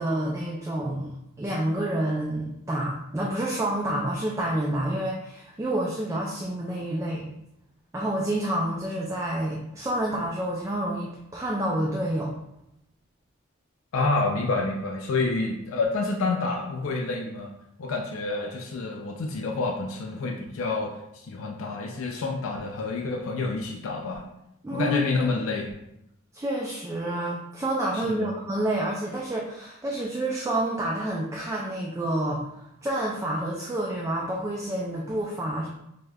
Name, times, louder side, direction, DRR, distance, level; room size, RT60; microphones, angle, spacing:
voice 1, 0.0-7.3 7.9-12.4 24.6-25.0 26.3-35.7, right 1 dB, 15° right, -3 dB, 0.3 m, -28 dB
voice 2, 13.9-17.5 17.8-24.2 24.7-25.7 27.9-28.3, left 3 dB, 85° left, 1 dB, 0.4 m, -28 dB
4.9 x 2.1 x 2.3 m, 0.83 s
head